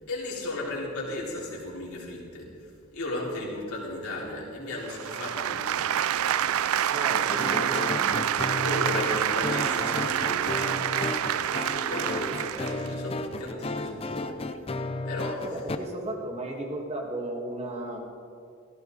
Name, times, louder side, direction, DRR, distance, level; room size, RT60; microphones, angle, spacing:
voice 1, 0.1-2.5 2.9-6.5 7.1-7.6 8.5-14.4 15.0-15.5, left 1 dB, 90° left, -5 dB, 3.9 m, -35 dB
sound 1, 4.9-12.9, right 10 dB, 80° right, 0.4 m, -27 dB
voice 2, 6.9-8.2 15.4-18.0, right 1 dB, 30° right, 0 dB, 1.9 m, -35 dB
sound 2, 7.4-15.8, left 2 dB, 25° left, 0.5 m, -34 dB
15.5 x 15.5 x 4.1 m, 2.3 s
head